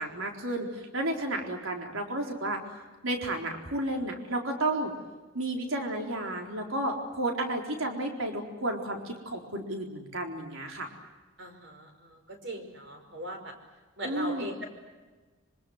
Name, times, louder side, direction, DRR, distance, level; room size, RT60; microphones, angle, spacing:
voice 1, 0.0-2.6 3.0-4.9 5.3-10.9 14.0-14.5, right 1 dB, 75° right, 2 dB, 4.1 m, -32 dB
voice 2, 11.4-13.5 14.0-14.7, equal, 55° right, 5 dB, 5.4 m, -39 dB
26.5 x 25.0 x 8.0 m, 1.3 s
head